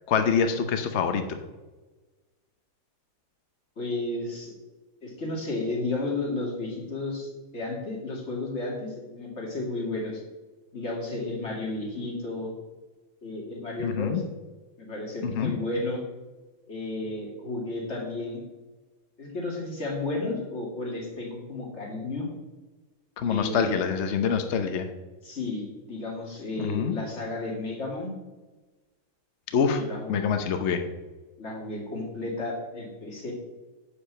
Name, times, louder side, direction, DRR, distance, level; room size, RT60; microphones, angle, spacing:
voice 1, 0.1-1.4 13.8-14.2 15.2-15.5 23.2-24.9 26.6-26.9 29.5-29.8 30.1-30.8, left 6 dB, 75° left, 7 dB, 0.6 m, -25 dB
voice 2, 3.8-4.5 5.0-7.3 7.5-10.2 10.7-12.5 13.2-14.1 14.8-16.0 16.7-18.4 19.2-22.3 23.2-23.7 25.2-28.1 29.8-30.2 31.4-33.3, left 2 dB, 35° left, -1 dB, 2.6 m, -32 dB
9.9 x 5.1 x 7.4 m, 1.2 s
omnidirectional pair, 2.3 m